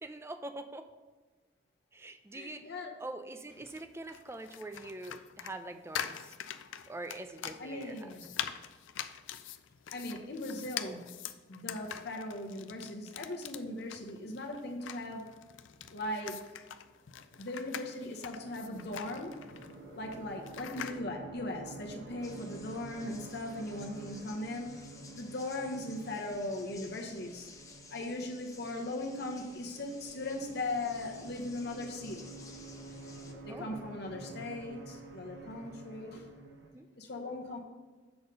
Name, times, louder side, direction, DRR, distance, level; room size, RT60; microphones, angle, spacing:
voice 1, 0.0-0.9 1.9-6.3 6.9-8.1 33.5-33.9 36.7-36.9, right 2 dB, 15° right, 8 dB, 0.4 m, -44 dB
voice 2, 2.3-2.9 7.6-8.3 9.9-11.1 11.5-15.3 15.9-16.4 17.4-19.3 19.9-27.5 27.9-32.3 33.4-36.3 37.0-37.6, left 2 dB, 60° left, 1 dB, 0.9 m, -39 dB
sound 1, 3.5-21.0, left 9 dB, 80° left, 0.4 m, -44 dB
sound 2, 17.2-36.7, right 2 dB, 60° right, 1.0 m, -50 dB
sound 3, 22.2-33.3, left 4 dB, 15° left, 0.7 m, -55 dB
6.8 x 4.3 x 5.2 m, 1.3 s
head